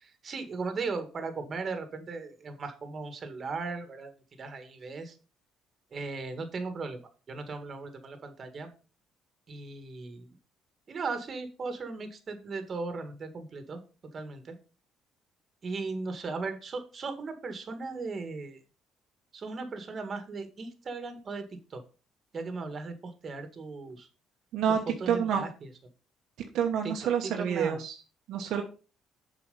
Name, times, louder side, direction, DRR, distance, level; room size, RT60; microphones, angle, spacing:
voice 1, 0.0-4.1 4.4-5.1 5.9-7.0 7.3-8.7 9.5-10.3 10.9-13.8 14.1-14.4 15.6-18.6 19.3-21.4 21.7-21.8 22.3-24.1 25.0-25.7 27.2-27.8, right 4 dB, 40° right, 7 dB, 1.8 m, -37 dB
voice 2, 25.1-25.4 26.5-28.0 28.3-28.6, right 8 dB, 70° right, 2 dB, 1.1 m, -28 dB
7.1 x 4.8 x 5.4 m, 0.35 s
cardioid pair, 95°, 0 cm